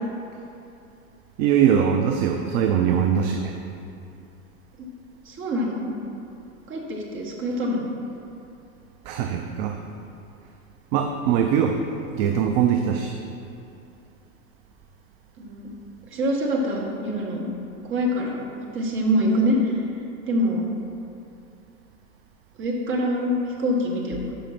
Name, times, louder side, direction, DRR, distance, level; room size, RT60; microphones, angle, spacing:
voice 1, 1.4-3.5 9.1-9.8 10.9-11.8 12.1-13.2, right 8 dB, 40° right, 4 dB, 0.5 m, -21 dB
voice 2, 5.2-5.9 6.7-7.9 15.4-15.7 16.1-17.5 17.8-18.4 18.7-19.8 20.3-20.7 22.6-24.2, equal, 25° right, -2 dB, 1.4 m, -25 dB
6.2 x 5.0 x 5.8 m, 2.7 s
hypercardioid pair, 110°, 45 cm